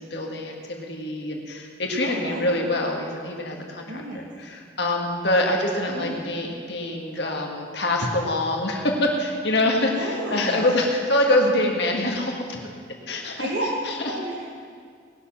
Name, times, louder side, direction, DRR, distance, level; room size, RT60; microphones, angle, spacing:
voice 1, 0.0-12.6 13.1-13.5 13.8-14.0, left 1 dB, 65° left, 1 dB, 1.8 m, -25 dB
voice 2, 2.0-2.7 3.9-4.3 5.9-6.2 9.9-10.8 13.4-13.7 14.0-14.3, right 1 dB, 75° right, -2 dB, 1.3 m, -31 dB
19.0 x 6.9 x 6.0 m, 2.2 s
head